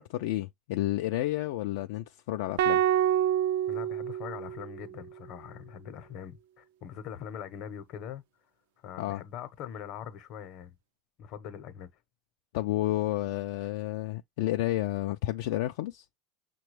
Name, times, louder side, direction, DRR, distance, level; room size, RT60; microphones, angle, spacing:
voice 1, 0.0-2.8 9.0-9.2 12.5-16.0, left 15 dB, 75° left, 0.3 m, -31 dB
sound 1, 2.6-4.9, right 11 dB, 80° right, 0.3 m, -27 dB
voice 2, 3.7-8.2 8.8-10.8 11.2-11.9, left 8 dB, 55° left, 0.8 m, -42 dB
6.0 x 2.2 x 3.1 m
supercardioid pair, 115°, 0 cm